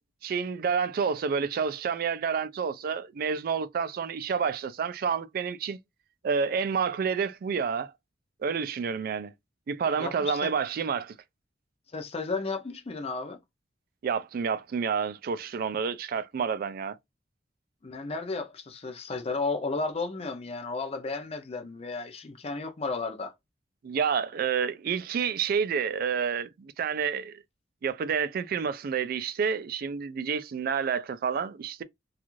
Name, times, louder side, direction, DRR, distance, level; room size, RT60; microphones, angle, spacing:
voice 1, 0.2-5.8 6.2-7.9 8.4-9.3 9.7-11.1 14.0-17.0 23.8-27.4 27.8-31.8, right 6 dB, 50° right, 0.3 m, -29 dB
voice 2, 10.0-10.5 11.9-13.4 17.8-23.3, left 3 dB, 35° left, 0.5 m, -33 dB
2.5 x 2.4 x 2.9 m
head